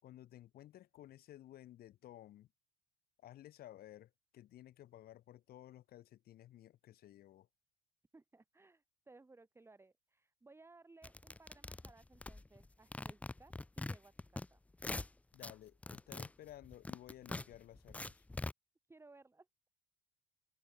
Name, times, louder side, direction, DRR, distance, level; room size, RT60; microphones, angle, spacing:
voice 1, 0.0-2.5 3.2-7.5 15.3-18.2, left 13 dB, 50° left, 6.1 m, -55 dB
voice 2, 8.1-14.6 18.9-19.5, right 3 dB, 10° right, 1.7 m, -62 dB
sound 1, 11.0-12.7 12.9-14.5 14.7-15.5 15.8-18.5, left 2 dB, 5° left, 0.5 m, -43 dB
figure-of-eight pair, 60°, 20 cm